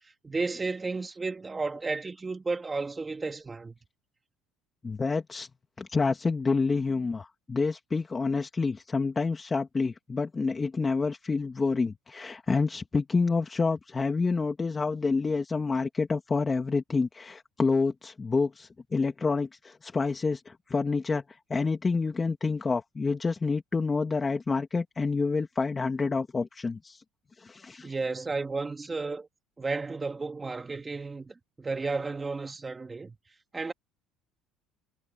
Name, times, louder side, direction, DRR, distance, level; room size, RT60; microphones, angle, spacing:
voice 1, 0.2-3.7 27.8-29.3 29.6-33.2 33.5-33.7, right 3 dB, 15° right, 2.9 m, -33 dB
voice 2, 4.8-5.5 5.8-27.0 27.4-27.9, left 4 dB, 20° left, 2.4 m, -28 dB
cardioid pair, 120°, 0 cm